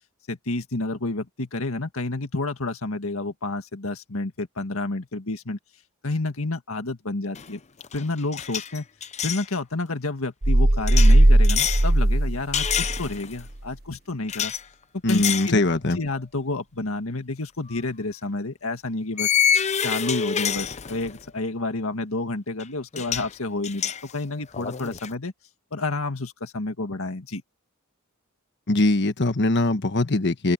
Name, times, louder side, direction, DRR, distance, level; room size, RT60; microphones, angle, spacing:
voice 1, 0.3-5.6 6.0-7.6 7.9-8.9 9.2-14.5 15.1-15.6 16.0-19.3 19.8-25.3 25.7-27.4, left 2 dB, 70° left, 1.9 m, -30 dB
sound 1, 7.3-7.6 7.8-9.5 10.9-11.9 12.5-13.4 14.3-14.6 15.1-15.5 16.0-16.2 17.7-17.8 19.2-21.2 22.6-22.7 22.9-23.3 23.6-25.1, left 8 dB, 30° left, 0.7 m, -27 dB
sound 2, 10.4-13.1, right 1 dB, 50° right, 1.3 m, -17 dB
voice 2, 15.0-16.0 28.7-30.5, left 2 dB, 55° left, 1.3 m, -21 dB
open air
head